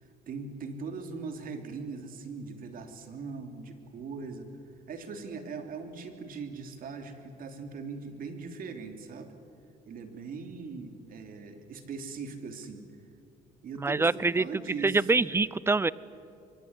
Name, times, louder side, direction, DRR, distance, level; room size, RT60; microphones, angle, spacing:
voice 1, 0.3-4.5 4.9-9.3 9.9-12.8 13.6-15.1, right 4 dB, 55° right, 6 dB, 3.1 m, -40 dB
voice 2, 13.8-14.4 14.8-15.9, right 3 dB, 15° right, 20 dB, 0.6 m, -25 dB
24.0 x 23.5 x 9.8 m, 2.5 s
cardioid pair, 110°, 17 cm